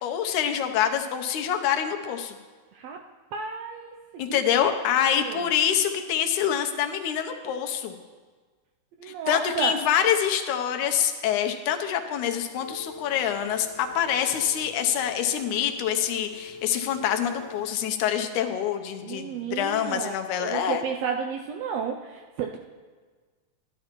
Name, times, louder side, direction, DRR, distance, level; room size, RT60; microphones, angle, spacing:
voice 1, 0.0-2.4 4.2-7.9 9.0-20.8, left 9 dB, 90° left, 6 dB, 2.2 m, -26 dB
voice 2, 3.3-4.8 5.2-5.5 9.0-9.7 19.0-20.1 20.4-22.6, right 6 dB, 80° right, 2 dB, 1.4 m, -32 dB
Telephone, 12.5-17.7, left 4 dB, 45° left, 0.9 m, -43 dB
12.5 x 11.5 x 3.0 m, 1.4 s
omnidirectional pair, 3.4 m